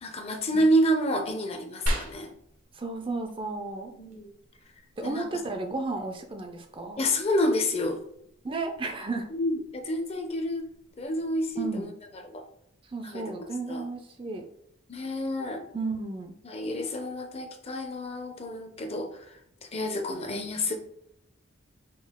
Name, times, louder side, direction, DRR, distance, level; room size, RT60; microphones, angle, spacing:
voice 1, 0.0-2.3 4.0-4.3 5.0-5.3 7.0-8.0 9.3-10.7 11.0-11.9 12.1-12.4 13.0-13.8 14.9-15.6 16.4-19.4 19.7-20.8, equal, 30° left, 5 dB, 0.6 m, -29 dB
sound 1, 1.9-11.9, equal, 80° right, 0.9 m, -41 dB
voice 2, 2.7-3.9 5.0-7.0 8.4-9.3 11.6-11.9 12.9-14.4 15.7-16.4, right 3 dB, 25° right, 5 dB, 0.4 m, -33 dB
5.3 x 2.3 x 3.6 m, 0.73 s
head